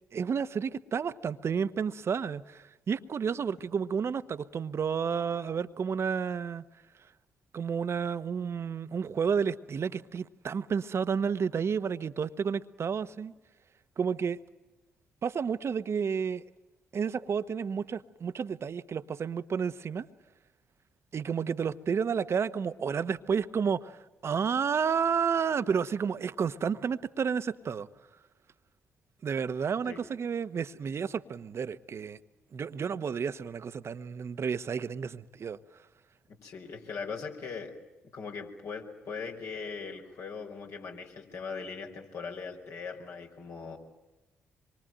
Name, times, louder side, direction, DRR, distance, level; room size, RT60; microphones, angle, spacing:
voice 1, 0.1-6.6 7.5-13.3 14.0-14.4 15.2-16.4 16.9-20.1 21.1-27.9 29.2-32.2 32.5-35.6, right 6 dB, 50° right, 1.2 m, -31 dB
voice 2, 36.3-37.7 38.1-43.8, left 5 dB, 60° left, 5.0 m, -40 dB
26.5 x 23.5 x 9.1 m
hypercardioid pair, 45°, 6 cm